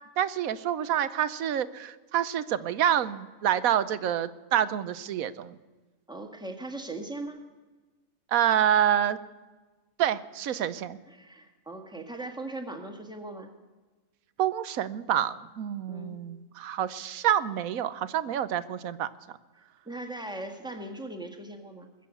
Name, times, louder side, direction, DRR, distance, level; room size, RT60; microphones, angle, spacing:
voice 1, 0.2-5.6 8.3-9.2 10.0-11.0 14.4-19.4, right 10 dB, 85° right, 15 dB, 1.2 m, -27 dB
voice 2, 6.1-7.4 10.5-10.7 11.1-13.5 15.9-16.2 19.8-21.9, right 2 dB, 5° right, 4 dB, 1.6 m, -39 dB
20.5 x 7.7 x 8.4 m, 1.3 s
omnidirectional pair, 1.4 m